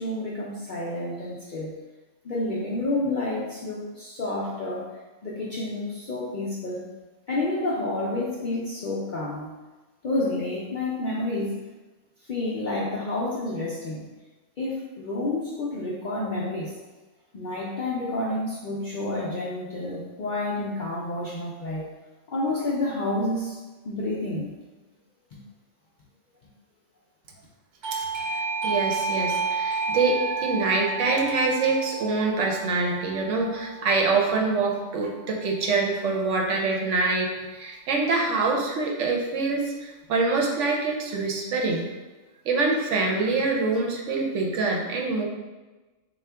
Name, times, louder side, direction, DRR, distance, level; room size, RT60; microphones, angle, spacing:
voice 1, 0.0-1.7 2.2-4.9 5.2-6.9 7.3-9.5 10.0-11.6 12.3-14.1 14.6-16.7 17.3-21.9 22.3-23.6 23.8-24.6, left 2 dB, 65° left, -5 dB, 0.5 m, -29 dB
Doorbell, 27.8-34.3, right 4 dB, 55° right, 0.5 m, -30 dB
voice 2, 28.3-41.9 42.4-45.2, right 3 dB, 70° right, 0 dB, 0.9 m, -25 dB
3.6 x 2.4 x 3.3 m, 1.2 s
omnidirectional pair, 1.3 m